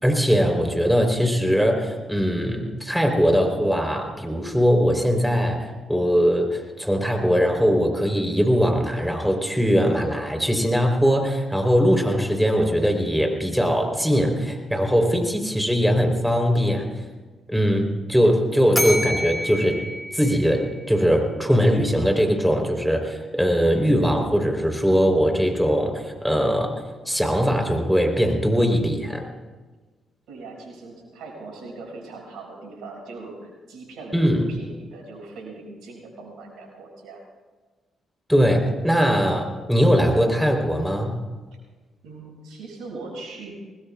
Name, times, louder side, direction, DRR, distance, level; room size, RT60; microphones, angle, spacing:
voice 1, 0.0-16.9 17.5-19.8 20.1-29.2 34.1-34.4 38.3-41.2, equal, ahead, 3 dB, 3.8 m, -21 dB
Bell, 18.7-21.0, left 1 dB, 20° left, 2.9 m, -29 dB
voice 2, 30.3-37.2 42.0-43.5, right 3 dB, 75° right, -1 dB, 6.2 m, -40 dB
25.5 x 20.0 x 2.4 m, 1.3 s
hypercardioid pair, 45°, 0 cm